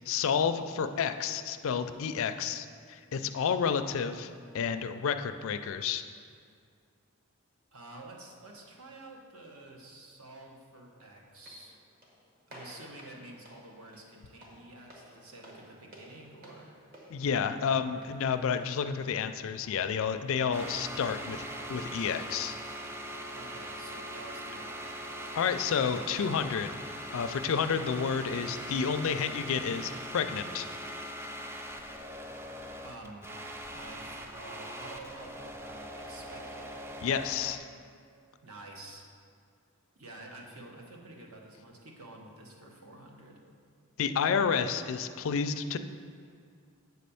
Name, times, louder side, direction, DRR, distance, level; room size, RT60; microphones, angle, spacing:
voice 1, 0.1-6.0 17.1-22.6 25.3-26.7 27.1-30.7 37.0-37.6 44.0-45.8, left 6 dB, 60° left, 9 dB, 0.4 m, -30 dB
voice 2, 7.7-11.8 12.5-16.7 23.3-24.9 32.8-33.3 33.7-36.8 38.4-39.1 39.9-43.4, right 2 dB, 75° right, 0 dB, 1.2 m, -49 dB
sound 1, 11.3-24.3, equal, 40° right, 1.4 m, -57 dB
sound 2, 20.5-37.6, equal, 10° right, 0.4 m, -41 dB
8.1 x 4.2 x 6.9 m, 2.2 s
head